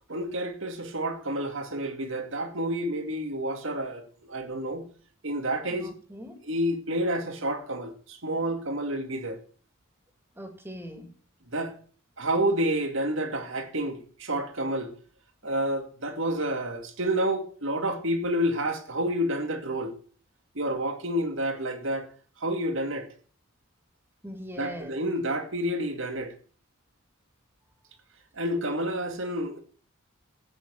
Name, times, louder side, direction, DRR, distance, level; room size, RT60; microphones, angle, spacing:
voice 1, 0.1-4.9 5.2-5.9 6.4-9.4 11.5-11.7 12.2-14.9 15.4-19.9 20.5-22.1 22.4-23.1 24.6-26.3 28.4-29.6, right 1 dB, 65° right, 2.3 m, -29 dB
voice 2, 5.7-6.4 10.4-11.1 24.2-24.9, equal, 10° right, 2.7 m, -41 dB
14.0 x 9.1 x 7.2 m
head